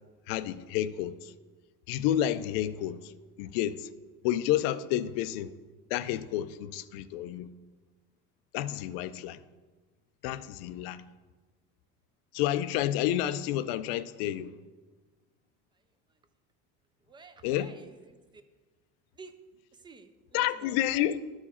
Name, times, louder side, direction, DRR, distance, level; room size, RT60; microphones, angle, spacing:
voice 1, 0.3-1.3 1.9-3.1 3.4-3.9 4.2-5.5 5.9-7.5 8.5-9.4 10.2-11.0 12.3-14.5 17.4-17.7 20.3-21.2, left 12 dB, 90° left, 0.5 m, -30 dB
voice 2, 17.1-18.4 19.1-19.3 19.7-20.8, right 4 dB, 15° right, 0.4 m, -51 dB
12.5 x 4.8 x 4.3 m
cardioid pair, 145°, 29 cm